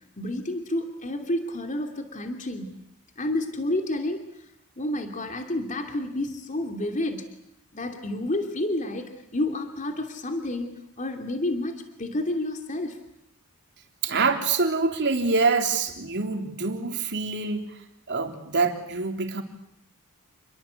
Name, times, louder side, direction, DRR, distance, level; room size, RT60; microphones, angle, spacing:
voice 1, 0.2-2.8 3.2-4.2 4.8-7.3 7.7-13.0, left 1 dB, 35° left, 5 dB, 2.8 m, -30 dB
voice 2, 14.0-17.8 18.1-19.4, right 4 dB, 55° right, 5 dB, 3.6 m, -25 dB
28.5 x 22.0 x 8.3 m, 0.75 s
head